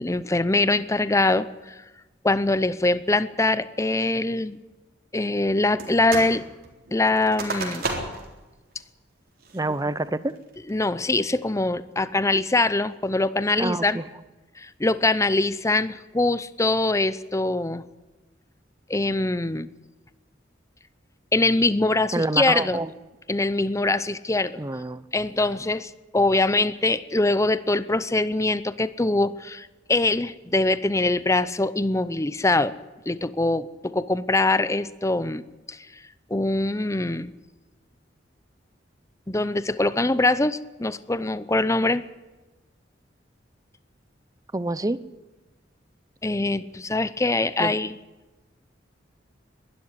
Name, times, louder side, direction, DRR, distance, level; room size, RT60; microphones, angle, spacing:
voice 1, 0.0-1.7 2.2-4.6 5.1-6.4 6.9-7.9 10.7-14.0 14.6-17.8 18.9-19.7 21.3-22.8 23.3-24.5 25.1-32.7 33.1-35.8 36.3-37.3 39.3-42.0 46.2-48.0, left 2 dB, 15° left, 16 dB, 0.7 m, -23 dB
frozen window opening, 5.8-6.4 6.6-8.3 8.8-8.9 9.4-9.8 10.3-10.7, right 3 dB, 55° right, 3.8 m, -32 dB
voice 2, 9.5-10.4 13.6-14.0 22.1-22.9 24.6-25.0 44.5-45.0 47.6-47.8, right 2 dB, 20° right, 16 dB, 0.7 m, -27 dB
21.5 x 12.5 x 9.8 m, 1.1 s
head